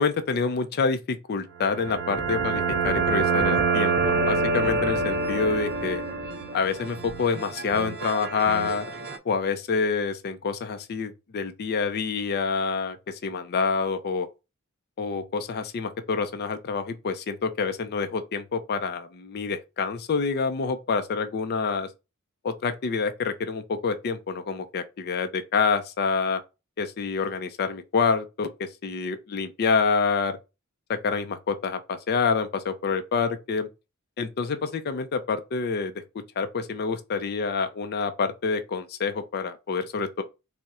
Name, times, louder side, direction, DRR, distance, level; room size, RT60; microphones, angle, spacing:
voice 1, 0.0-6.0 6.5-8.9 9.3-14.3 15.0-21.9 22.4-26.4 26.8-30.4 31.0-33.7 34.2-35.9 36.4-40.2, left 5 dB, 50° left, 0.4 m, -27 dB
sound 1, 1.6-9.2, right 4 dB, 50° right, 0.6 m, -27 dB
4.1 x 2.1 x 3.5 m
head